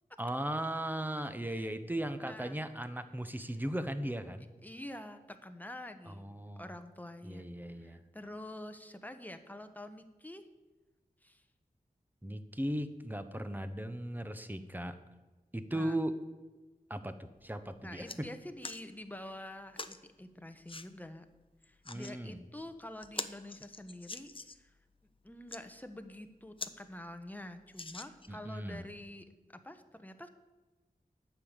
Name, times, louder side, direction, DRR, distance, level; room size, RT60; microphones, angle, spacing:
voice 1, 0.2-4.5 6.1-6.7 7.2-8.0 12.2-15.0 15.5-16.2 16.9-18.3 21.8-22.4 28.3-28.9, right 1 dB, 10° right, 10 dB, 1.1 m, -37 dB
voice 2, 2.2-2.6 4.6-6.3 6.6-7.5 7.8-10.5 11.2-11.4 15.7-16.0 17.8-21.2 21.6-24.3 24.6-24.7 25.2-29.2 29.6-30.3, left 1 dB, 10° left, 8 dB, 1.2 m, -47 dB
sound 1, 17.4-17.5 17.8-18.2 18.6-18.8 19.8-20.0 20.7-20.9 21.6-22.2 22.6-22.7 23.0-24.7 25.3-25.6 26.2-26.3 26.6-26.8 27.1-27.2 27.7-28.4 29.1-29.2, left 3 dB, 35° left, 0.7 m, -43 dB
9.6 x 6.9 x 8.9 m, 1.2 s
wide cardioid pair, 45°, 15 cm